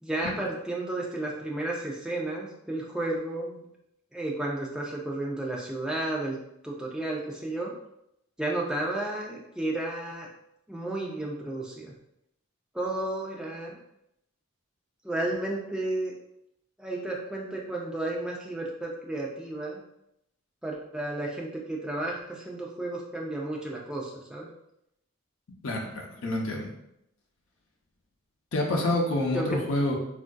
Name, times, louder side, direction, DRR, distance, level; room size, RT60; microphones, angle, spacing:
voice 1, 0.0-3.6 4.1-6.4 6.6-7.7 8.4-10.3 10.7-11.9 12.7-13.8 15.0-16.1 16.8-19.8 20.6-24.5 29.3-29.6, right 2 dB, 5° right, -3 dB, 0.4 m, -32 dB
voice 2, 25.6-26.7 28.5-29.9, left 1 dB, 75° left, 0 dB, 0.6 m, -27 dB
3.5 x 2.5 x 2.2 m, 0.79 s
head